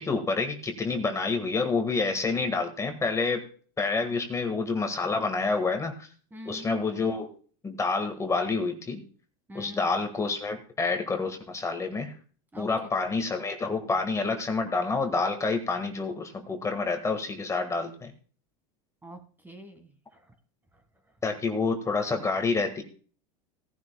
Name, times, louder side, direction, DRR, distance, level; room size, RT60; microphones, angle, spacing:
voice 1, 0.0-3.4 3.8-6.1 6.4-7.3 7.6-9.0 9.5-12.1 12.6-18.1 21.2-22.8, left 4 dB, 15° left, 5 dB, 1.7 m, -28 dB
voice 2, 6.3-6.7 9.5-9.9 12.5-12.7 19.0-20.3, equal, 10° right, 7 dB, 1.8 m, -45 dB
17.5 x 11.0 x 2.3 m, 0.41 s
supercardioid pair, 130°, 19 cm